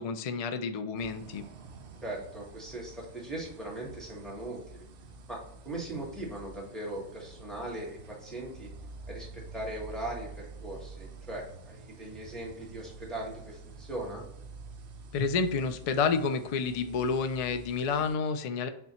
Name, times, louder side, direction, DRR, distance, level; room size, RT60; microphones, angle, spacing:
voice 1, 0.0-1.4 15.1-18.7, left 5 dB, 65° left, 8 dB, 0.3 m, -29 dB
sound 1, 1.0-18.1, right 3 dB, 60° right, 0.7 m, -48 dB
voice 2, 2.0-4.9 5.3-5.4 5.6-8.7 9.1-14.2, right 1 dB, ahead, -3 dB, 1.0 m, -39 dB
6.6 x 2.2 x 2.8 m, 0.76 s
omnidirectional pair, 1.2 m